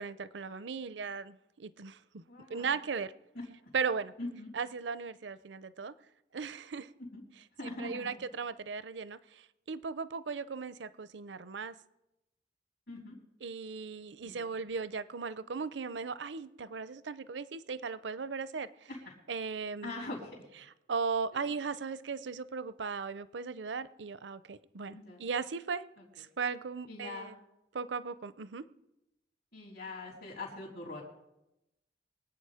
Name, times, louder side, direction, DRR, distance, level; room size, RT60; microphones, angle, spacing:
voice 1, 0.0-2.2 2.5-3.1 3.7-4.1 4.5-5.9 6.3-6.9 7.6-11.7 13.4-18.9 19.3-19.9 20.9-25.8 26.2-27.3 27.7-28.7, right 5 dB, 80° right, 15 dB, 0.6 m, -37 dB
voice 2, 2.3-2.7 3.4-3.5 4.2-4.5 7.1-7.2 7.6-8.2 12.9-13.2 14.2-14.5 18.9-19.1 19.8-20.4 21.3-21.5 24.9-25.2 26.9-27.4 29.5-31.0, left 2 dB, 60° left, -6 dB, 3.6 m, -42 dB
23.5 x 8.7 x 4.9 m, 0.90 s
head